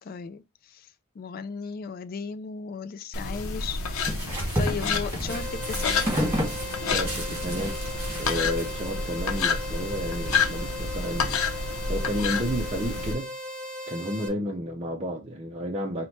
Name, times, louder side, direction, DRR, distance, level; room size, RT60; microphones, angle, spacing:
voice 1, 0.0-3.8 4.2-6.1, left 5 dB, 45° left, 0.3 m, -36 dB
sound 1, 3.1-13.1, left 4 dB, 80° left, 0.7 m, -29 dB
sound 2, 3.3-10.4, equal, 10° right, 1.5 m, -33 dB
sound 3, 5.3-14.3, equal, 5° left, 0.7 m, -37 dB
voice 2, 6.8-7.8 8.2-13.3 13.9-16.1, equal, 25° right, 0.5 m, -32 dB
4.5 x 2.2 x 4.0 m
head